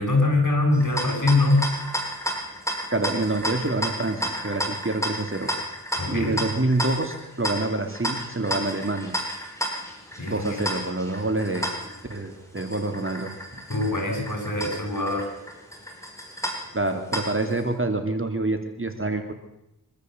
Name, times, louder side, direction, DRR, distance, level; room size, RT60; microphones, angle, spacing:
voice 1, 0.0-1.6 6.0-6.5 10.2-10.6 13.7-15.3, left 2 dB, 45° left, 2 dB, 7.6 m, -23 dB
sound 1, 0.7-17.6, equal, 5° left, 6.5 m, -32 dB
voice 2, 2.9-5.5 6.1-9.1 10.3-11.7 12.1-13.3 16.7-19.3, right 2 dB, 30° right, 6 dB, 2.9 m, -27 dB
24.0 x 13.5 x 7.9 m, 0.88 s
cardioid pair, 40°, 41 cm